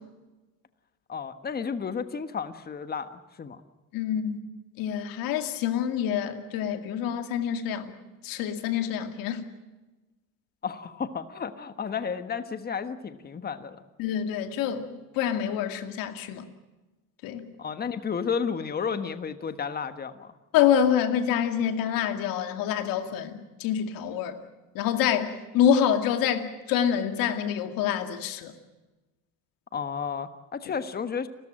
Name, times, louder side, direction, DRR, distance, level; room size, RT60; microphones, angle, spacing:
voice 1, 1.1-3.6 10.6-13.8 17.6-20.3 29.7-31.3, left 6 dB, 30° left, 10 dB, 1.4 m, -32 dB
voice 2, 3.9-4.4 4.8-8.0 8.2-9.4 14.0-16.5 17.2-17.5 20.5-24.4 24.7-28.5, left 9 dB, 80° left, 7 dB, 2.4 m, -26 dB
29.5 x 14.0 x 8.9 m, 1.1 s
cardioid pair, 115°, 34 cm